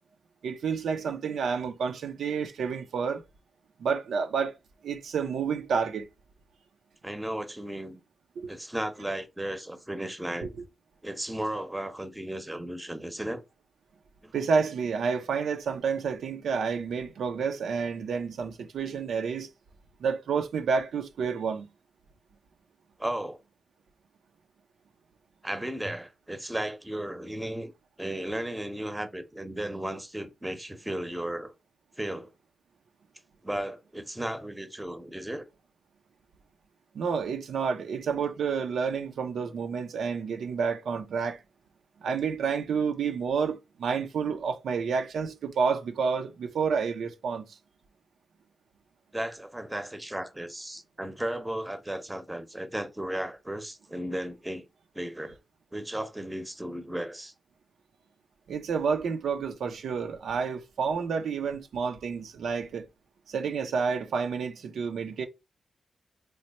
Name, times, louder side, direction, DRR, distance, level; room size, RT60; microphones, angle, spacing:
voice 1, 0.4-3.2 3.8-4.5 4.8-6.1 8.4-8.5 10.4-10.5 14.3-19.5 20.0-21.7 36.9-41.4 42.0-47.6 58.5-62.8 63.3-65.3, right 5 dB, 85° right, 0.4 m, -29 dB
voice 2, 7.0-8.0 8.5-10.6 11.0-13.4 14.2-14.3 23.0-23.4 25.4-27.7 28.0-31.5 32.0-32.3 33.4-35.5 49.1-54.6 54.9-55.4 55.7-57.3, right 1 dB, 15° right, 0.7 m, -35 dB
3.2 x 2.0 x 4.0 m
cardioid pair, 50°, 0 cm